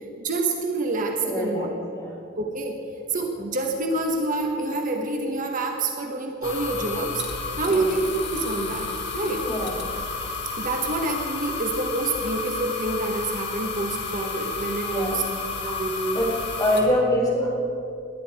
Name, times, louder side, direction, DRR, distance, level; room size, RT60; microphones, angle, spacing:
voice 1, 0.2-1.7 2.4-2.8 3.1-7.2 7.6-9.5 10.6-15.2 15.6-16.2, right 2 dB, 45° right, 2 dB, 1.2 m, -27 dB
voice 2, 1.2-2.2 7.6-7.9 9.4-9.8 14.8-15.3 16.1-16.3 16.6-17.5, left 1 dB, 20° left, -5 dB, 4.4 m, -25 dB
sound 1, 6.4-16.8, left 4 dB, 60° left, 1.9 m, -31 dB
20.0 x 10.0 x 4.7 m, 2.5 s
head